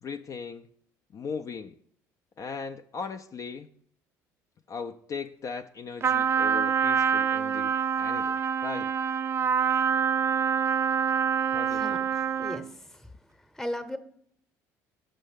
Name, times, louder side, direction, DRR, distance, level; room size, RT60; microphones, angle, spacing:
voice 1, 0.0-0.7 1.1-1.8 2.4-3.7 4.7-8.9 11.5-12.0, left 5 dB, 45° left, 6 dB, 0.4 m, -38 dB
Trumpet, 6.0-12.7, right 7 dB, 30° right, 0.4 m, -26 dB
voice 2, 11.7-13.1 13.5-14.0, left 1 dB, 5° left, 10 dB, 0.8 m, -37 dB
6.4 x 5.5 x 6.5 m, 0.66 s
supercardioid pair, 80°, 8 cm